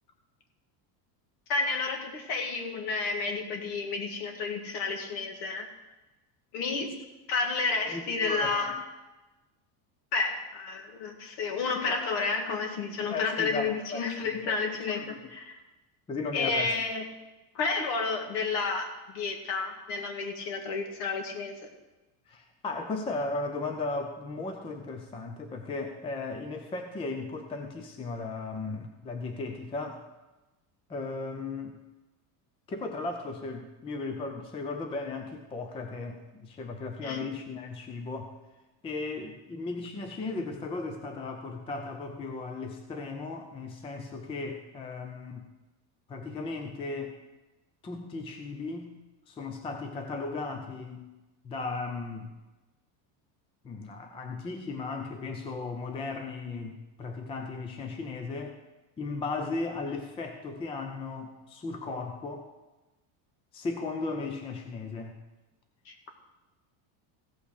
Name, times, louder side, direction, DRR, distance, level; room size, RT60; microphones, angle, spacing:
voice 1, 1.5-5.7 6.5-6.9 7.3-8.8 10.1-15.6 16.3-17.0 17.5-21.5 37.0-37.2 65.9-66.1, left 4 dB, 55° left, 3 dB, 2.1 m, -31 dB
voice 2, 7.9-8.8 11.8-12.0 13.0-14.6 14.9-15.2 16.1-16.8 22.3-30.0 30.9-31.8 32.7-38.3 38.8-45.5 46.1-47.2 47.8-48.9 49.3-51.1 51.4-52.3 53.6-58.6 59.0-62.5 63.5-65.2, left 3 dB, 10° left, 5 dB, 0.5 m, -36 dB
15.5 x 5.7 x 6.5 m, 1.1 s
cardioid pair, 170°, 48 cm